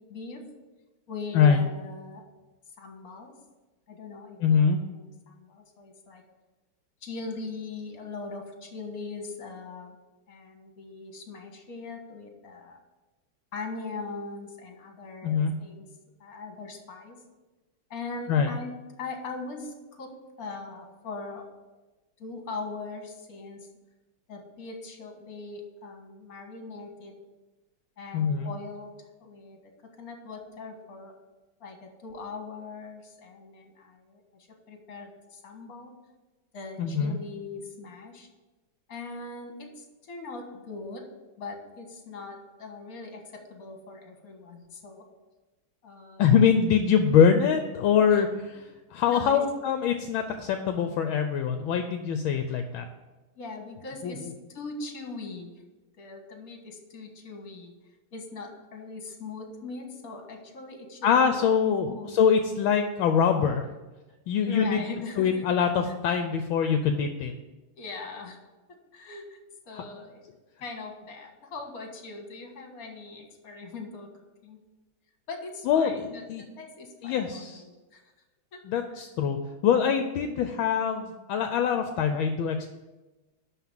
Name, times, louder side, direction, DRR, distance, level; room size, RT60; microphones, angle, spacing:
voice 1, 0.1-0.5 1.1-2.2 2.8-3.3 3.9-6.2 7.0-10.0 10.3-12.8 13.5-15.9 16.2-17.2 17.9-18.7 19.0-21.5 22.2-23.7 24.3-27.1 28.0-28.9 29.2-29.6 30.0-31.1 31.6-34.2 34.7-36.0 36.5-38.3 38.9-41.1 41.4-45.1 45.8-46.3 48.1-48.3 48.5-48.6 49.0-49.4 53.4-55.5 56.0-57.7 58.1-61.6 61.9-62.1 64.5-65.7 67.7-68.4 68.7-69.4 69.7-70.3 70.6-74.1 74.4-74.6 75.3-78.1 78.5-78.6, left 3 dB, 45° left, 3 dB, 1.9 m, -40 dB
voice 2, 4.4-4.8 15.2-15.5 18.3-18.5 28.1-28.5 36.8-37.2 46.2-48.3 48.9-52.8 54.0-54.1 61.0-63.7 64.3-64.8 65.2-67.3 75.7-76.4 77.0-77.6 78.6-79.4 79.6-82.7, left 7 dB, 75° left, 7 dB, 1.4 m, -23 dB
11.5 x 4.0 x 7.4 m, 1.1 s
omnidirectional pair, 2.3 m